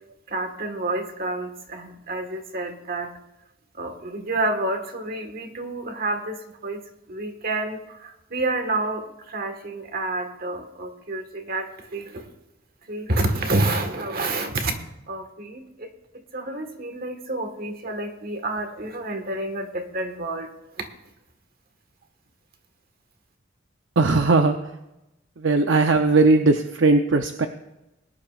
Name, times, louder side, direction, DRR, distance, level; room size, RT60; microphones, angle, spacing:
voice 1, 0.3-3.1 3.8-6.8 7.1-12.3 12.9-14.8 15.1-15.9 16.1-20.5 20.8-20.9, right 2 dB, 50° right, 6 dB, 1.5 m, -29 dB
voice 2, 24.0-24.6 25.4-27.5, right 3 dB, 70° right, 6 dB, 0.6 m, -18 dB
21.0 x 11.0 x 2.4 m, 0.92 s
head